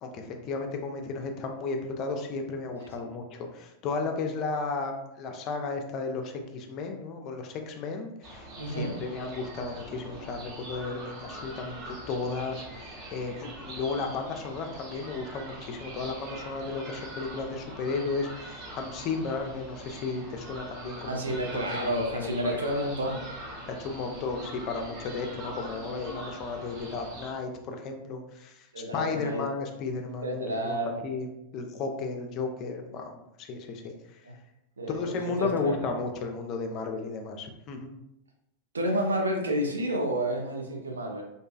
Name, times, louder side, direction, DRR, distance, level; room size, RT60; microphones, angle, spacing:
voice 1, 0.0-22.6 23.7-28.7 28.9-30.8 31.0-31.3 31.5-33.9 34.9-37.9, left 4 dB, 35° left, 4 dB, 0.3 m, -34 dB
voice 2, 2.8-3.1 8.6-9.0 21.1-23.2 28.7-29.4 30.2-31.0 34.2-34.3 34.8-35.8 38.7-41.2, right 1 dB, 75° right, 1 dB, 0.5 m, -30 dB
sound 1, 8.2-27.3, right 1 dB, 35° right, 0.7 m, -43 dB
2.6 x 2.2 x 2.3 m, 0.84 s
figure-of-eight pair, 90°, 0 cm